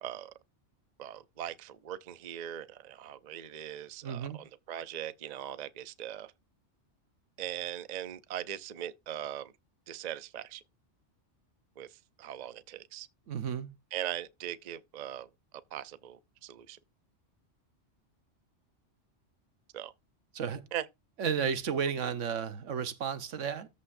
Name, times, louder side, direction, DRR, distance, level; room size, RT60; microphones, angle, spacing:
voice 1, 0.0-0.3 1.0-6.3 7.4-9.5 9.9-10.6 11.8-11.9 12.2-13.1 13.9-15.3 15.7-16.8 19.7-19.9 20.7-20.9, right 11 dB, 45° right, 0.6 m, -40 dB
voice 2, 4.0-4.4 13.3-13.7 20.3-20.6 21.2-23.7, right 7 dB, 80° right, 1.3 m, -33 dB
14.0 x 5.3 x 2.6 m
omnidirectional pair, 1.3 m